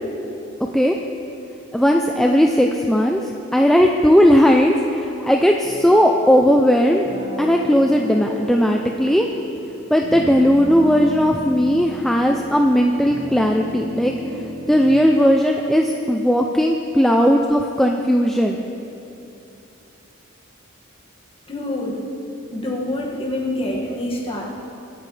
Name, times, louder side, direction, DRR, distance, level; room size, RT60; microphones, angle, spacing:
voice 1, 1.7-7.1 7.4-9.3 9.9-14.4 14.7-18.6, equal, ahead, 1 dB, 0.4 m, -17 dB
sound 1, 5.6-14.8, equal, 25° right, 1.1 m, -33 dB
voice 2, 21.5-22.0 22.5-24.4, left 1 dB, 25° left, -3 dB, 1.9 m, -26 dB
23.5 x 10.0 x 3.3 m, 2.8 s
head